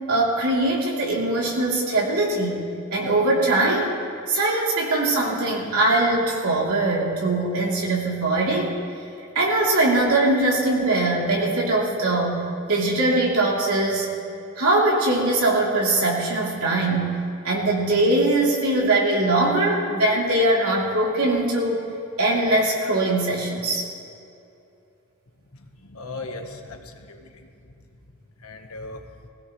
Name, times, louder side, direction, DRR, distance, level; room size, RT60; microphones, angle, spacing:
voice 1, 0.0-2.6 2.9-3.9 4.3-8.7 9.3-12.4 12.7-14.1 14.6-17.1 17.4-21.8 22.2-23.9, right 2 dB, 80° right, -4 dB, 3.3 m, -21 dB
voice 2, 25.8-27.3 28.4-29.0, left 3 dB, 80° left, 4 dB, 1.3 m, -37 dB
21.5 x 16.0 x 3.2 m, 2.6 s
head